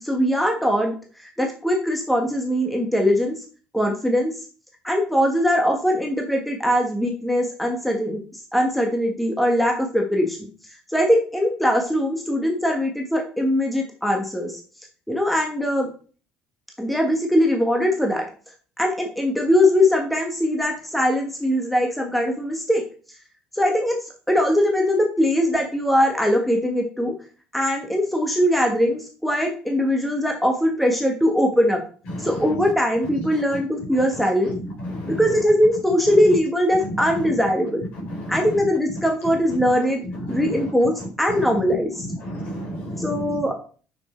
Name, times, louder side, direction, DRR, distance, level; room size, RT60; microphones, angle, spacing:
voice 1, 0.0-0.9 1.4-3.4 3.7-4.3 4.8-8.2 8.5-10.5 10.9-14.6 15.1-15.9 16.8-18.2 18.8-22.8 23.5-24.0 24.3-27.1 27.5-31.8 32.2-34.5 35.1-37.8 38.3-40.0 40.3-42.1 43.0-43.5, equal, ahead, 1.3 m, -21 dB
voice 2, 32.1-32.5 34.8-35.2 36.8-37.3 38.0-38.5 40.3-40.5 41.3-41.5 42.2-43.4, equal, 60° left, 3.9 m, -31 dB
6.3 x 6.0 x 4.3 m
cardioid pair, 120°, 3 cm